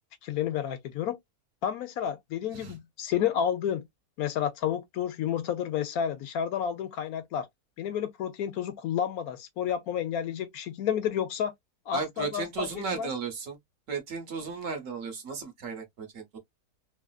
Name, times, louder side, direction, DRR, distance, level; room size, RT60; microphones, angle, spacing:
voice 1, 0.2-1.2 1.6-3.9 4.2-7.5 7.8-11.5 11.9-13.1, left 9 dB, 70° left, 1.0 m, -30 dB
voice 2, 11.9-13.6 13.9-16.4, right 5 dB, 60° right, 1.1 m, -35 dB
3.1 x 2.4 x 2.3 m
omnidirectional pair, 1.7 m